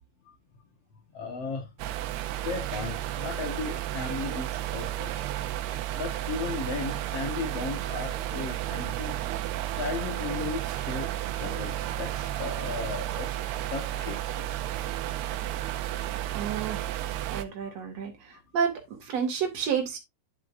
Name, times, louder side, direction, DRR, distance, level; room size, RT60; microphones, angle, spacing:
voice 1, 1.1-1.7 2.4-5.2 5.9-9.2 9.7-13.3 13.6-14.5 17.6-17.7, left 4 dB, 55° left, 1.9 m, -36 dB
sound 1, 1.8-17.4, right 13 dB, 85° right, 2.7 m, -32 dB
voice 2, 16.3-16.9 17.3-20.0, right 7 dB, 45° right, 3.0 m, -30 dB
10.5 x 7.5 x 2.6 m
omnidirectional pair, 4.7 m